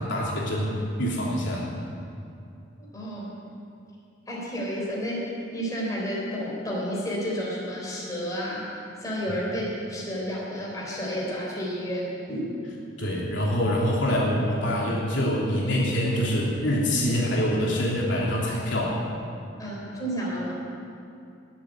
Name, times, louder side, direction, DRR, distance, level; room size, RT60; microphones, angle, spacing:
voice 1, 0.0-1.7 13.0-19.0, equal, 75° left, -5 dB, 3.2 m, -25 dB
voice 2, 2.8-3.4 4.3-8.6 9.0-12.5 19.6-20.5, equal, 20° left, -5 dB, 3.9 m, -31 dB
19.5 x 7.7 x 8.4 m, 2.5 s
head